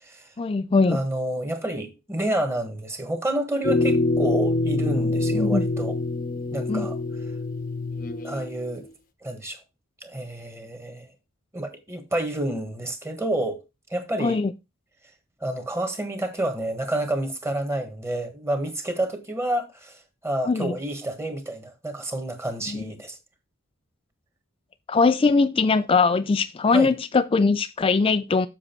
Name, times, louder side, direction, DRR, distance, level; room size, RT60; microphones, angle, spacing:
voice 1, 0.4-1.0 5.3-5.6 6.7-6.9 14.2-14.5 20.4-20.7 22.7-22.9 24.9-28.5, left 4 dB, 25° left, 0.4 m, -21 dB
voice 2, 0.9-6.0 6.5-7.0 8.2-8.9 9.2-9.6 10.0-11.1 11.5-13.6 13.9-14.4 15.4-23.2 26.7-26.9, right 1 dB, 10° right, 1.5 m, -29 dB
sound 1, 3.6-8.6, left 2 dB, 40° left, 0.9 m, -25 dB
7.5 x 6.3 x 4.5 m
head